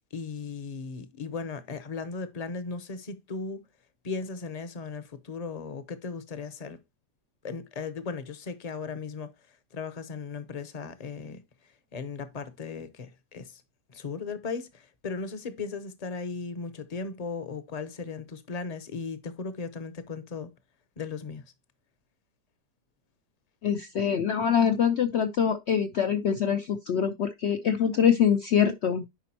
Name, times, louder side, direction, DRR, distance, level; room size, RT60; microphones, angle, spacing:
voice 1, 0.1-3.6 4.0-6.8 7.4-9.3 9.7-11.4 11.9-13.6 13.9-20.5 21.0-21.4, left 4 dB, 40° left, 0.6 m, -37 dB
voice 2, 23.6-29.0, left 8 dB, 80° left, 0.6 m, -24 dB
10.0 x 5.2 x 2.8 m
omnidirectional pair, 1.8 m